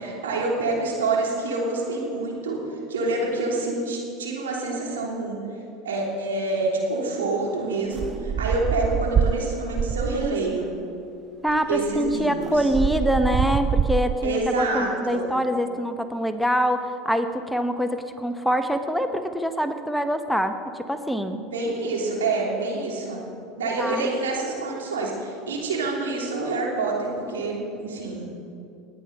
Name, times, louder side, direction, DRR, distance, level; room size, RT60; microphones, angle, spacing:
voice 1, 0.0-2.6 2.9-5.4 5.8-10.7 11.7-12.7 14.2-15.4 21.3-23.2 23.6-28.3, right 2 dB, 85° right, -2 dB, 3.1 m, -27 dB
sound 1, 7.9-10.5 11.5-11.6 11.8-14.5, right 7 dB, 35° right, 0.4 m, -25 dB
voice 2, 11.4-21.4 23.8-24.1, equal, ahead, 8 dB, 0.9 m, -25 dB
18.5 x 9.4 x 5.4 m, 2.5 s
hypercardioid pair, 85°, 0 cm